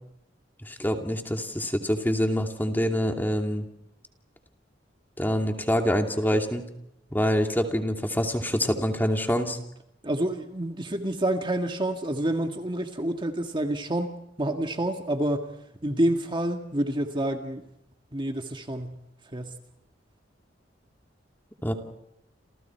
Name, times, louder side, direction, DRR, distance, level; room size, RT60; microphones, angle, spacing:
voice 1, 0.6-3.7 5.2-6.6 7.1-9.6 21.6-21.7, equal, 10° left, 4 dB, 2.7 m, -26 dB
voice 2, 10.0-15.5 15.8-17.6 18.1-19.0 19.3-19.5, right 1 dB, 25° right, 4 dB, 1.9 m, -28 dB
29.5 x 28.5 x 4.6 m, 0.81 s
head